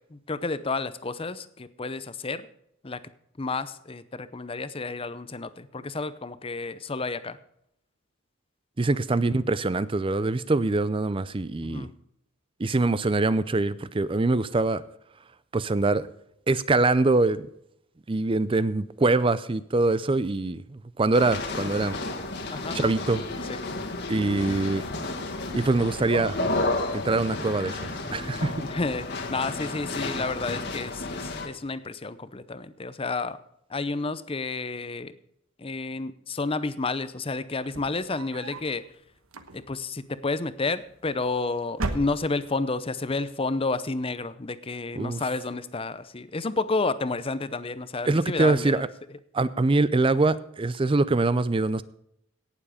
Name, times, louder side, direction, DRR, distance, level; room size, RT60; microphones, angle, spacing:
voice 1, 0.1-2.5 2.8-3.0 3.4-7.4 11.6-11.9 22.5-22.8 23.5-23.8 28.6-33.4 33.7-35.1 35.6-38.8 39.5-48.8, left 3 dB, 25° left, 0.6 m, -31 dB
voice 2, 8.8-11.9 12.6-14.8 15.5-16.0 16.5-17.5 18.1-21.9 22.7-23.2 24.1-24.8 25.5-26.4 26.9-28.5 45.0-45.2 48.1-48.9 49.3-51.8, right 3 dB, 25° right, 0.5 m, -24 dB
sound 1, 21.1-31.5, left 2 dB, 55° left, 1.8 m, -32 dB
sound 2, 37.6-38.8 39.2-39.9 40.9-41.4 41.7-42.6, right 2 dB, 80° right, 1.2 m, -35 dB
18.0 x 7.2 x 5.0 m
head